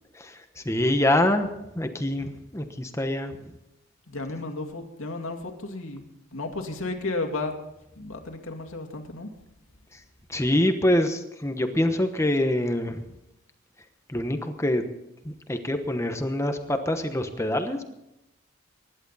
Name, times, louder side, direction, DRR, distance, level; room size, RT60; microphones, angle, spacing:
voice 1, 0.1-1.5 1.7-3.4 9.9-10.0 10.3-13.0 14.1-14.8 15.2-17.8, left 1 dB, 15° left, 7 dB, 1.0 m, -25 dB
voice 2, 4.1-6.0 6.3-7.5 8.0-9.3, left 2 dB, 80° left, 4 dB, 2.4 m, -33 dB
24.5 x 11.0 x 4.1 m, 0.88 s
head